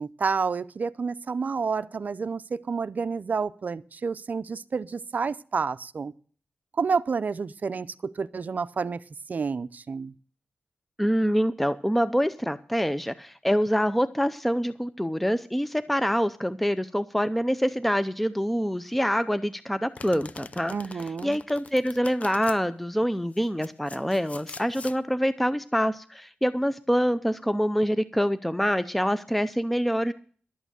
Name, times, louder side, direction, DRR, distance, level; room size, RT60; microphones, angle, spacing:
voice 1, 0.0-6.1 6.8-9.0 9.3-10.1 20.7-21.4, right 5 dB, 50° right, 16 dB, 0.5 m, -29 dB
voice 2, 11.0-30.1, equal, 5° left, 12 dB, 0.5 m, -26 dB
Domestic sounds home sounds, 19.9-22.6 23.3-25.0, left 4 dB, 40° left, 0.7 m, -44 dB
12.0 x 8.7 x 6.8 m, 0.42 s
wide cardioid pair, 105°, 4 cm